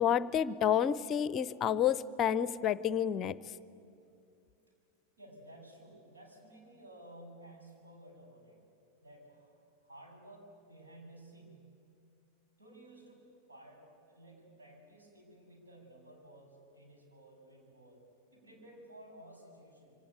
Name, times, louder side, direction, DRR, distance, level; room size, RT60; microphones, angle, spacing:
voice 1, 0.0-3.4, left 9 dB, 30° left, 18 dB, 0.7 m, -29 dB
voice 2, 5.2-8.6 9.0-11.8 12.6-18.0 18.3-19.9, right 1 dB, 75° right, 0 dB, 7.3 m, -55 dB
27.0 x 24.5 x 9.1 m, 2.6 s
figure-of-eight pair, 90°, 0 cm